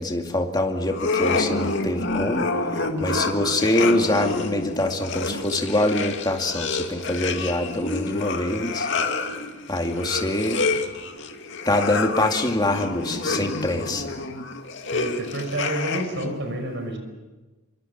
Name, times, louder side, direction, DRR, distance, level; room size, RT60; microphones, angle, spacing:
voice 1, 0.0-2.5 3.0-8.9 9.7-10.7 11.7-14.1, left 1 dB, 20° left, 3 dB, 2.4 m, -24 dB
sound 1, 0.9-16.3, left 3 dB, 55° left, 2.5 m, -28 dB
voice 2, 14.9-17.0, right 1 dB, 55° right, 5 dB, 5.5 m, -29 dB
27.0 x 24.5 x 7.3 m, 1.2 s
head